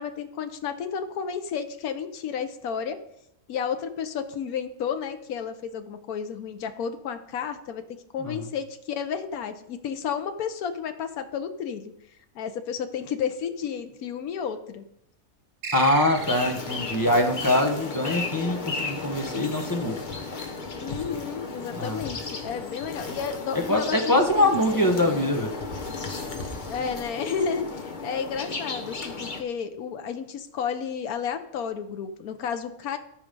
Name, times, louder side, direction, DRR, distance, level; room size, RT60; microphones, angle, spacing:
voice 1, 0.0-3.0 3.5-7.8 8.1-11.9 12.3-14.8 20.8-25.2 26.7-33.0, left 7 dB, 85° left, 7 dB, 1.3 m, -32 dB
sound 1, 15.6-16.8, right 4 dB, 75° right, 1.9 m, -34 dB
voice 2, 15.7-20.0 21.8-22.0 23.7-25.5, left 1 dB, 15° left, 3 dB, 1.0 m, -23 dB
sound 2, 16.2-29.4, left 3 dB, 35° left, 1.1 m, -34 dB
13.5 x 5.0 x 5.3 m, 0.77 s
omnidirectional pair, 1.5 m